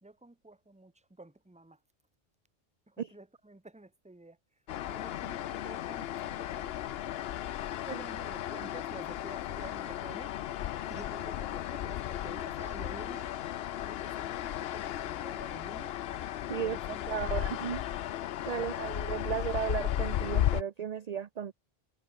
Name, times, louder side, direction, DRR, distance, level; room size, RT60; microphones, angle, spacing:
voice 1, 0.0-1.8 2.9-4.4 4.9-7.1 7.8-10.3 10.8-13.3 13.8-15.9 16.6-17.4 18.5-18.7, right 2 dB, 5° right, 1.1 m, -50 dB
sound 1, 4.7-20.6, left 12 dB, 75° left, 0.8 m, -35 dB
voice 2, 17.1-17.8 18.5-21.5, right 8 dB, 50° right, 0.6 m, -34 dB
omnidirectional pair, 1.0 m